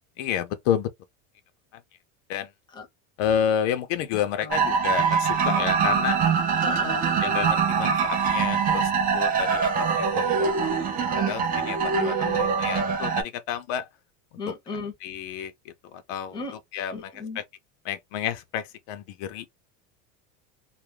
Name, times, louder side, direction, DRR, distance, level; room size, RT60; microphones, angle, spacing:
voice 1, 0.2-0.9 2.3-2.5 3.2-6.2 7.2-13.9 15.0-15.5 15.9-16.4 16.7-17.4 17.8-19.5, left 9 dB, 70° left, 0.6 m, -30 dB
voice 2, 4.1-4.7 6.6-7.0 9.8-10.1 11.9-12.6 14.4-14.9 16.3-16.5 16.9-17.4, left 4 dB, 10° left, 0.7 m, -36 dB
sound 1, 4.5-13.2, right 6 dB, 25° right, 0.3 m, -23 dB
2.3 x 2.1 x 3.1 m
supercardioid pair, 145°, 41 cm